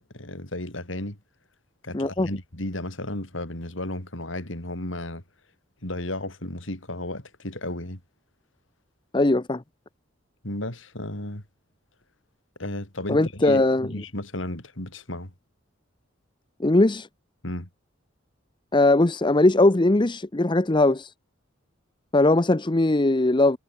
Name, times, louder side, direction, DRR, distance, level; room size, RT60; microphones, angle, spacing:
voice 1, 0.1-1.2 1.8-5.2 5.8-8.0 10.4-11.4 12.6-15.3 17.4-17.7, left 1 dB, 75° left, 4.5 m, -33 dB
voice 2, 1.9-2.3 9.1-9.6 13.1-13.9 16.6-17.1 18.7-21.1 22.1-23.6, left 2 dB, 25° left, 0.7 m, -20 dB
head